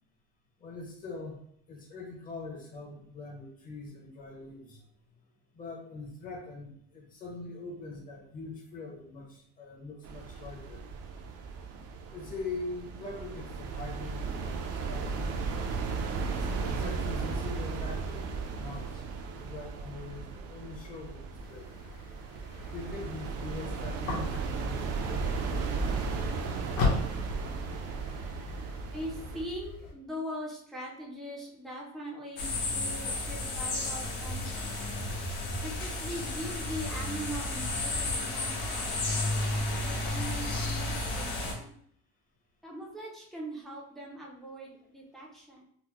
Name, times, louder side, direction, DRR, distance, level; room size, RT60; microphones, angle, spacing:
voice 1, 0.6-1.4 1.7-4.8 5.5-10.8 12.1-15.2 16.4-19.0 19.3-21.7 22.7-27.1 32.9-33.2, left 3 dB, 25° left, 0 dB, 0.8 m, -43 dB
sound 1, 10.0-29.4, right 4 dB, 50° right, 0.5 m, -35 dB
sound 2, 21.4-29.9, left 4 dB, 50° left, 1.0 m, -38 dB
voice 2, 28.9-34.9 35.6-39.3 39.8-41.7 42.6-45.6, equal, ahead, -4 dB, 0.5 m, -41 dB
sound 3, 32.4-41.5, left 2 dB, 85° left, 1.1 m, -32 dB
4.0 x 2.0 x 2.9 m, 0.65 s
cardioid pair, 165°, 31 cm